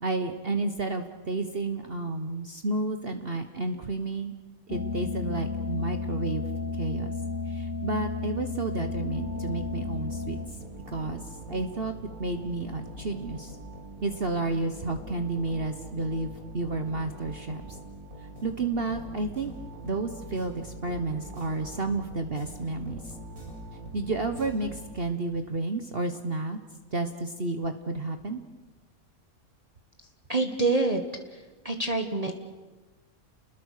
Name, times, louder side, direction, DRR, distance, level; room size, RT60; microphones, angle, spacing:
voice 1, 0.0-4.3 4.7-6.4 6.8-7.1 7.5-10.4 10.9-11.2 11.5-11.9 12.2-13.5 14.0-17.8 18.4-19.5 19.8-23.0 23.9-26.6 26.9-28.4, right 2 dB, 45° right, 7 dB, 1.3 m, -31 dB
sound 1, 4.7-10.5, left 4 dB, 65° left, 1.5 m, -33 dB
sound 2, 8.9-25.3, right 1 dB, 80° right, 7.6 m, -43 dB
voice 2, 30.3-31.0 31.3-32.3, right 2 dB, 25° right, 4 dB, 1.4 m, -27 dB
30.0 x 21.0 x 6.6 m, 1.3 s
omnidirectional pair, 1.5 m